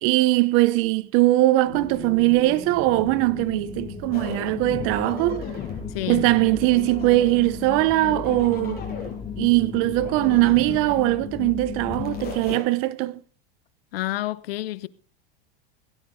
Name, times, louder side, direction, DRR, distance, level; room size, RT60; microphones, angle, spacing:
voice 1, 0.0-5.4 6.1-8.8 9.4-13.2, right 18 dB, 50° right, 0.9 m, -21 dB
resonating very far away, 1.7-12.6, left 6 dB, 15° left, 3.6 m, -35 dB
sound 1, 4.1-5.9 6.4-7.5 8.0-9.2 9.9-11.1 11.8-12.6, left 6 dB, 30° left, 6.7 m, -37 dB
voice 2, 5.9-6.2 13.9-14.9, left 16 dB, 80° left, 1.1 m, -29 dB
17.0 x 12.0 x 3.9 m
supercardioid pair, 135°, 29 cm